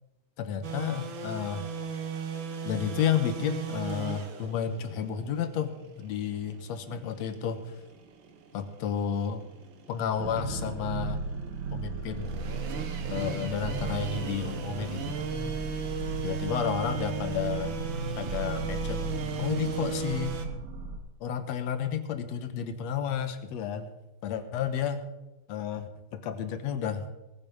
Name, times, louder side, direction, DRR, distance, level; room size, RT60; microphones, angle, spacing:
voice 1, 0.4-1.7 2.6-7.7 8.5-9.4 9.9-11.2 11.7-12.3 13.1-15.2 16.2-17.8 18.2-19.1 19.4-20.3 21.2-23.9 24.2-25.1 25.5-27.1, left 8 dB, 65° left, 10 dB, 2.1 m, -31 dB
sound 1, 0.6-20.5, right 6 dB, 55° right, 1.5 m, -38 dB
sound 2, 10.2-21.0, right 3 dB, 70° right, 2.9 m, -35 dB
19.0 x 9.7 x 5.4 m, 1.0 s
omnidirectional pair, 3.6 m